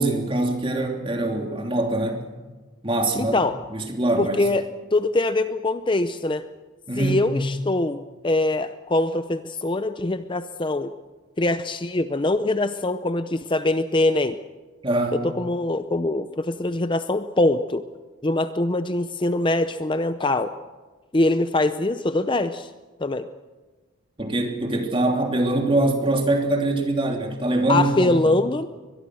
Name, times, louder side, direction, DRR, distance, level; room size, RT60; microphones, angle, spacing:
voice 1, 0.0-2.2 2.8-3.3 3.7-4.4 6.9-7.2 14.8-15.3 24.2-28.1, right 2 dB, 25° right, 3 dB, 3.1 m, -23 dB
voice 2, 3.2-3.6 4.2-6.5 7.0-10.9 11.4-14.4 15.1-17.8 18.2-20.5 21.1-22.7 23.0-23.3 27.7-28.7, left 2 dB, 25° left, 11 dB, 0.6 m, -23 dB
23.0 x 21.5 x 6.3 m, 1.3 s
head